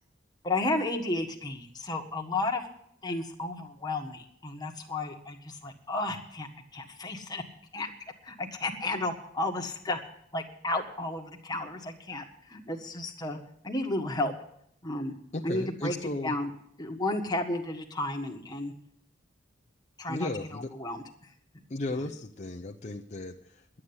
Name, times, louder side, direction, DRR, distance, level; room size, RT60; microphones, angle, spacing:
voice 1, 0.4-2.7 3.0-7.4 7.7-7.9 8.2-10.0 10.3-13.4 13.6-14.3 14.8-15.1 15.4-15.9 16.2-16.5 16.8-18.7 20.0-21.0, left 2 dB, 20° left, 2 dB, 1.7 m, -32 dB
voice 2, 15.3-16.4 20.1-20.7 21.7-23.8, left 2 dB, 40° left, 2 dB, 0.7 m, -35 dB
11.5 x 8.7 x 9.8 m, 0.69 s
head